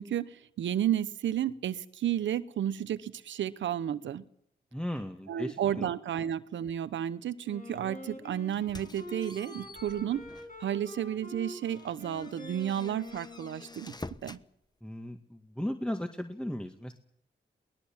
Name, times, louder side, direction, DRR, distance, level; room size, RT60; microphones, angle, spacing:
voice 1, 0.0-4.2 5.3-10.2 10.6-13.9 14.2-14.4, right 10 dB, 90° right, 15 dB, 0.9 m, -32 dB
voice 2, 4.7-5.9 14.8-16.9, left 1 dB, 5° left, 5 dB, 1.9 m, -36 dB
Wind instrument woodwind instrument, 7.4-14.1, left 1 dB, 45° left, 7.2 m, -46 dB
sound 1, 8.5-10.6 11.1-11.2 11.6-14.5, left 2 dB, 20° left, 1.2 m, -48 dB
22.0 x 18.5 x 7.3 m, 0.73 s
supercardioid pair, 40°, 19 cm